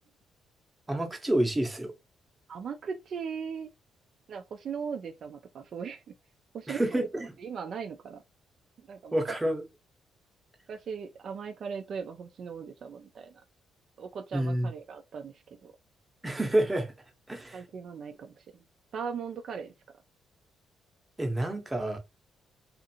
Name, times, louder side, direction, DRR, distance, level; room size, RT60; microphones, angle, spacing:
voice 1, 0.9-1.9 6.7-7.3 9.1-9.6 14.3-14.7 16.2-16.9 17.3-17.6 21.2-22.0, right 1 dB, 15° right, 0.8 m, -28 dB
voice 2, 2.5-3.7 4.3-6.0 6.5-8.2 8.9-9.4 10.7-13.4 14.0-15.3 15.6-15.7 17.5-18.3 18.9-19.7, right 6 dB, 60° right, 0.4 m, -38 dB
2.5 x 2.5 x 2.8 m
cardioid pair, 90°, 0 cm